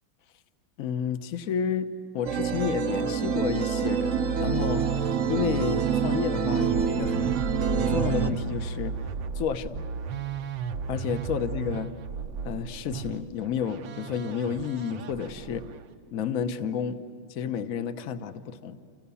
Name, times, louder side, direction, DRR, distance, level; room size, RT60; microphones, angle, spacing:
voice 1, 0.8-1.9 2.1-7.4 7.7-9.0 9.3-9.8 10.9-11.9 12.4-15.7 16.1-17.0 17.3-18.8, left 7 dB, 50° left, 9 dB, 1.2 m, -31 dB
sound 1, 2.2-8.3, right 6 dB, 50° right, 1.0 m, -26 dB
Musical instrument, 4.1-15.9, right 6 dB, 70° right, 1.6 m, -36 dB
29.5 x 27.5 x 7.0 m, 2.5 s
omnidirectional pair, 2.2 m